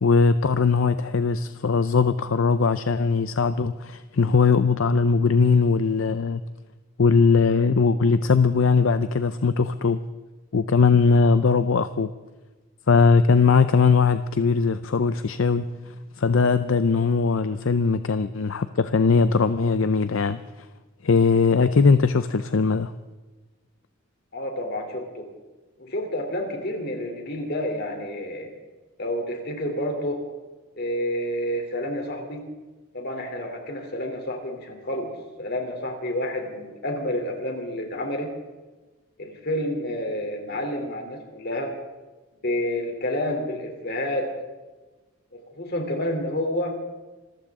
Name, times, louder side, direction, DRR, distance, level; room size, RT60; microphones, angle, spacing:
voice 1, 0.0-6.4 7.0-10.0 10.5-12.1 12.9-20.4 21.0-22.9, left 4 dB, 70° left, 12 dB, 0.6 m, -20 dB
voice 2, 24.3-25.3 25.8-28.5 29.0-30.2 30.7-32.4 32.9-35.1 35.4-38.3 39.2-41.7 42.4-44.3 45.3-46.7, left 1 dB, 50° left, 3 dB, 3.2 m, -29 dB
26.5 x 14.5 x 3.7 m, 1.2 s
head